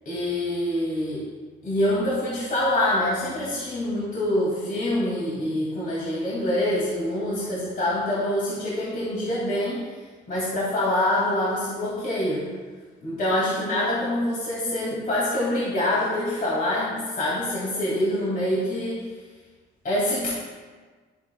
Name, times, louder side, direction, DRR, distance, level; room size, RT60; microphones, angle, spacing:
voice 1, 0.1-1.2 1.6-9.8 10.3-12.5 13.0-19.0 19.8-20.3, left 1 dB, 45° left, -7 dB, 2.4 m, -25 dB
11.5 x 6.9 x 2.4 m, 1.5 s
cardioid pair, 90°, 20 cm